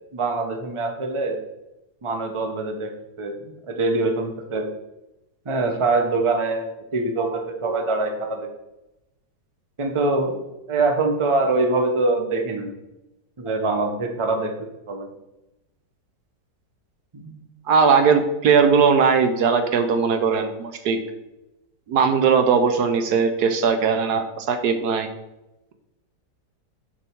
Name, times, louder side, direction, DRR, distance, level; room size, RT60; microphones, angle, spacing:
voice 1, 0.1-1.4 2.0-2.9 3.2-4.7 5.4-8.5 9.8-10.4 10.7-12.7 13.4-14.5 14.9-15.1 17.1-17.3, right 3 dB, 25° right, 4 dB, 0.7 m, -24 dB
voice 2, 17.7-21.0 21.9-25.1, right 5 dB, 70° right, 8 dB, 1.2 m, -19 dB
6.7 x 5.4 x 4.5 m, 0.97 s
omnidirectional pair, 1.9 m